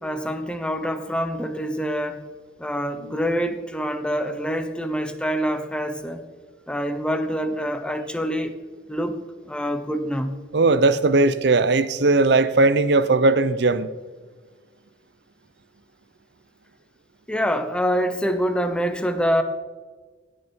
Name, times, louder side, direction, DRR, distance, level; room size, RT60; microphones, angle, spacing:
voice 1, 0.0-2.2 2.6-6.3 6.7-8.5 8.9-10.4 17.3-19.4, equal, 5° left, 0.8 m, -26 dB
voice 2, 10.5-13.9, right 3 dB, 65° right, 0.6 m, -18 dB
17.5 x 6.6 x 4.5 m
head